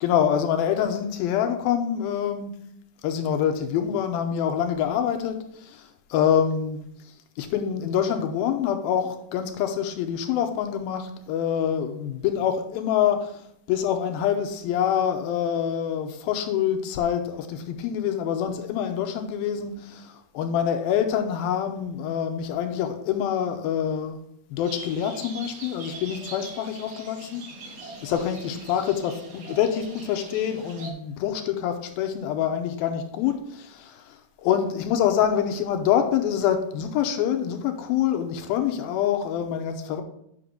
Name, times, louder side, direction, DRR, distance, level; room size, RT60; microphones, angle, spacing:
voice 1, 0.0-2.5 3.0-6.8 7.4-13.3 13.7-24.2 24.5-27.4 27.8-34.2 34.4-40.0, left 9 dB, 80° left, 6 dB, 2.6 m, -26 dB
sound 1, 24.6-30.9, right 3 dB, 50° right, 1.8 m, -42 dB
9.4 x 5.8 x 3.8 m, 0.72 s
omnidirectional pair, 4.4 m